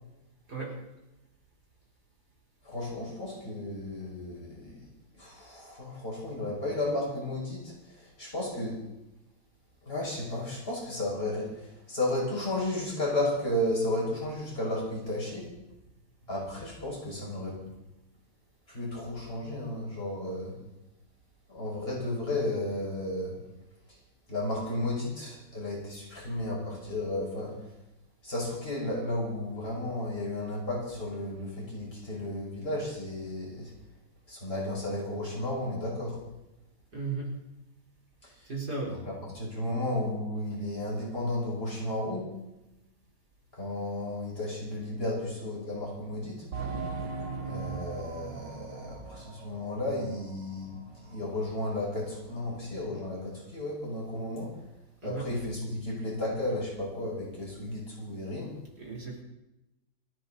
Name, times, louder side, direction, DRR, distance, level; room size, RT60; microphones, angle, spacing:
voice 1, 2.6-4.8 5.2-8.8 9.8-15.5 16.3-17.6 18.7-20.6 21.5-23.4 23.9-24.0 24.3-27.6 28.2-33.7 34.3-36.2 38.2-38.5 38.9-42.3 43.5-46.5 47.4-54.5 55.0-58.5, left 1 dB, 30° left, -5 dB, 6.7 m, -33 dB
voice 2, 36.9-37.3 38.5-38.9 55.0-55.3 58.8-59.2, right 4 dB, 65° right, -3 dB, 5.0 m, -35 dB
sound 1, 46.5-50.8 51.1-51.2 51.8-51.9, right 5 dB, 85° right, 2.2 m, -39 dB
28.5 x 10.0 x 4.3 m, 0.94 s
omnidirectional pair, 1.9 m